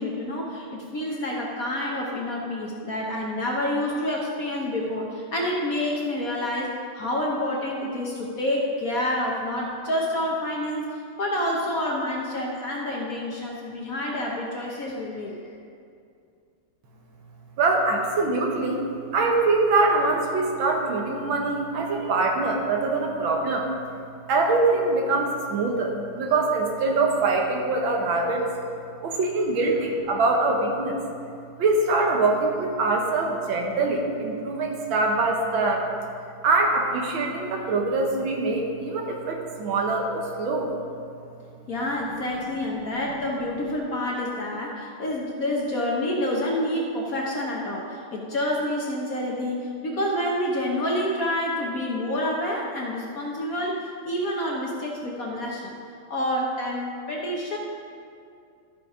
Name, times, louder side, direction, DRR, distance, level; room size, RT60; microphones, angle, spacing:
voice 1, 0.0-15.4 41.7-55.8 56.1-57.6, left 1 dB, 50° left, -2 dB, 1.2 m, -28 dB
voice 2, 17.6-18.8 19.1-23.7 24.3-28.5 29.0-31.0 31.6-35.9 36.4-40.7, right 3 dB, 70° right, 1 dB, 1.8 m, -23 dB
13.0 x 5.8 x 4.9 m, 2.4 s
omnidirectional pair, 2.3 m